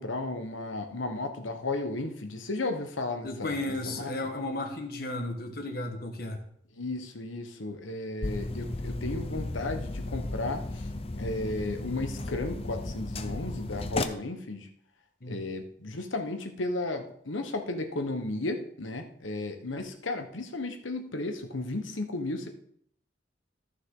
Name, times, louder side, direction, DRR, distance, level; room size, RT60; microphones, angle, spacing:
voice 1, 0.0-4.2 6.7-10.9 11.2-14.7 15.3-22.5, left 2 dB, 90° left, 6 dB, 1.3 m, -34 dB
voice 2, 3.2-6.4 15.2-15.4, left 2 dB, 50° left, 5 dB, 1.4 m, -34 dB
sound 1, 8.2-14.0, left 2 dB, 30° left, 0.6 m, -34 dB
14.0 x 6.4 x 3.8 m, 0.64 s
head